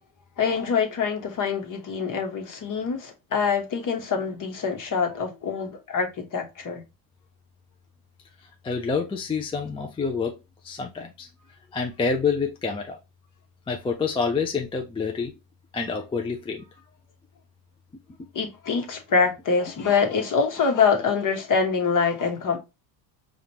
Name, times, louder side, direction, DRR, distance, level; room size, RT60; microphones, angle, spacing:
voice 1, 0.4-6.8 18.3-22.6, left 5 dB, 40° left, 1.2 m, -25 dB
voice 2, 8.6-10.4 10.6-11.3 11.7-13.0 13.7-15.3 15.7-16.7, left 5 dB, 10° left, 0.4 m, -27 dB
5.0 x 2.5 x 2.9 m
supercardioid pair, 85°, 50 cm